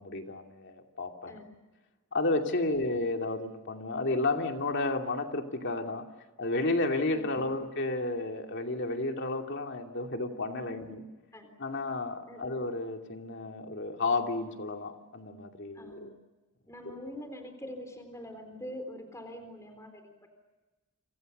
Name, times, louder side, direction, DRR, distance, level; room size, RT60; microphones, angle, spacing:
voice 1, 0.0-1.3 2.1-6.1 6.4-11.0 11.6-16.1 16.8-17.1, left 2 dB, 55° left, 4 dB, 2.8 m, -32 dB
voice 2, 15.7-16.1 16.7-20.3, equal, 15° left, 6 dB, 3.8 m, -44 dB
29.5 x 26.5 x 6.7 m, 1.2 s
head